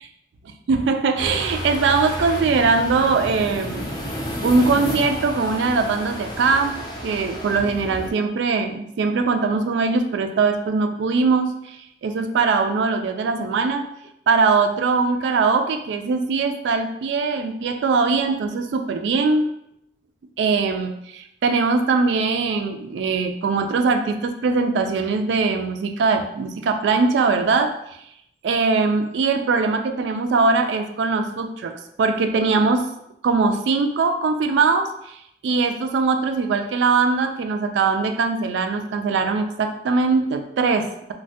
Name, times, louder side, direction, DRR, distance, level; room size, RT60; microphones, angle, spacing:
voice 1, 0.7-3.9 4.4-6.7 7.0-13.9 14.3-19.5 20.4-27.8 28.4-32.9 33.2-41.1, right 4 dB, 85° right, 6 dB, 0.3 m, -21 dB
sound 1, 1.2-8.1, equal, 20° left, 0.5 m, -31 dB
3.1 x 2.1 x 2.8 m, 0.76 s
head